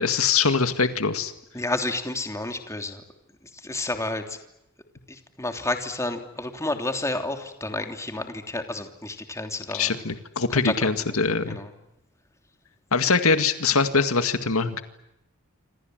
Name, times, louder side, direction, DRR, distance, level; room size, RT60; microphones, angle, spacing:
voice 1, 0.0-1.3 9.7-11.6 12.9-14.8, left 4 dB, 75° left, 9 dB, 2.0 m, -23 dB
voice 2, 1.5-3.0 3.6-4.4 5.1-9.9 10.6-10.7 11.5-11.7, left 2 dB, 15° left, 5 dB, 3.1 m, -30 dB
27.5 x 27.0 x 7.9 m, 0.87 s
head